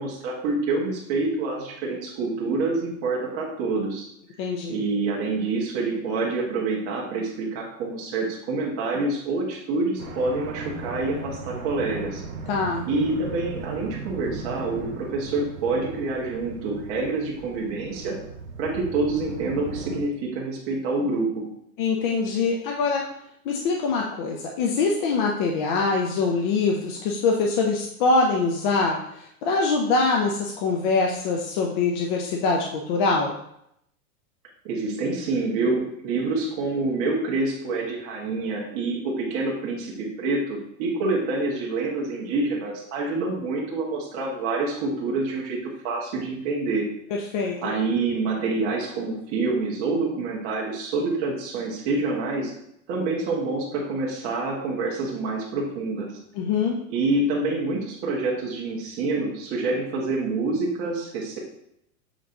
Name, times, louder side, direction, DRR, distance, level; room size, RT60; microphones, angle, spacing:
voice 1, 0.0-4.1 4.7-12.2 12.9-18.1 18.6-21.4 34.6-46.8 47.6-52.5 52.9-56.1 56.9-61.4, right 3 dB, 30° right, -2 dB, 1.6 m, -27 dB
voice 2, 4.4-4.8 12.5-12.9 21.8-23.0 23.4-33.4 47.3-47.8 56.4-56.8, left 4 dB, 35° left, 0 dB, 0.6 m, -24 dB
sound 1, 10.0-20.0, right 3 dB, 80° right, 1.4 m, -37 dB
7.9 x 3.1 x 3.9 m, 0.75 s
supercardioid pair, 160°, 43 cm